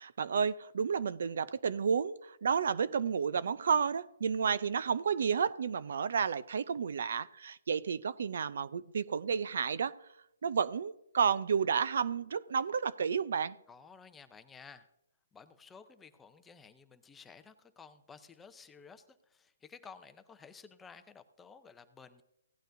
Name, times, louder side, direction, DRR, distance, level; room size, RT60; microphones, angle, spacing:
voice 1, 0.0-10.0 10.4-13.6, right 6 dB, 65° right, 0.4 m, -31 dB
voice 2, 13.7-14.9 15.3-22.2, left 5 dB, 10° left, 0.6 m, -54 dB
16.5 x 9.1 x 2.6 m
hypercardioid pair, 150°, 0 cm